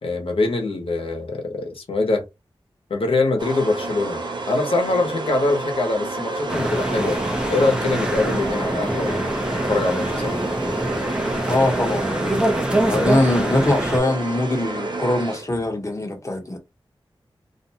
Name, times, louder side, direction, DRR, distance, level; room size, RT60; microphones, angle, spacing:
voice 1, 0.0-2.2 2.9-4.2 4.5-7.2 7.5-9.3 9.7-10.4, left 2 dB, 85° left, 0.9 m, -23 dB
sound 1, 3.4-15.8, right 2 dB, 55° right, 0.6 m, -30 dB
sound 2, 6.5-14.0, right 1 dB, 10° right, 0.6 m, -24 dB
voice 2, 11.5-12.4 12.8-16.6, left 1 dB, 35° left, 0.9 m, -22 dB
2.5 x 2.2 x 2.7 m
wide cardioid pair, 70°, 9 cm